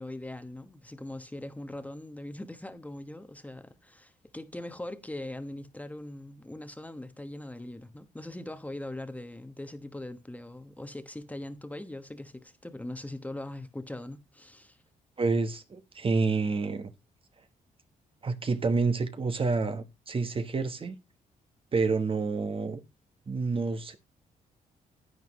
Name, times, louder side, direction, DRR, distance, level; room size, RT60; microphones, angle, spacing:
voice 1, 0.0-14.8, left 1 dB, 10° left, 1.2 m, -41 dB
voice 2, 15.2-16.9 18.2-21.0 21.7-22.8 23.3-24.0, right 4 dB, 35° right, 1.2 m, -28 dB
11.0 x 9.2 x 3.1 m
cardioid pair, 85°, 15 cm